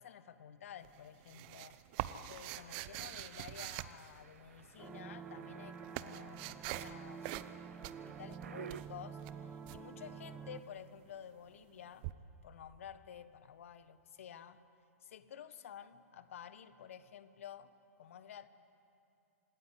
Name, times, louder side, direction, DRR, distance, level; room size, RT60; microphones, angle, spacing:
voice 1, 0.0-1.8 2.3-12.1 12.4-14.6 15.0-18.5, left 9 dB, 60° left, 13 dB, 1.3 m, -52 dB
sound 1, 0.8-4.7 5.4-7.0 7.2-7.6 7.8-9.8 12.0-12.1, right 15 dB, 40° right, 1.0 m, -44 dB
sound 2, 2.3-8.8, right 9 dB, 65° right, 0.8 m, -55 dB
sound 3, 4.8-10.6, right 6 dB, 15° right, 1.1 m, -49 dB
27.0 x 18.0 x 10.0 m, 2.7 s
figure-of-eight pair, 105°, 8 cm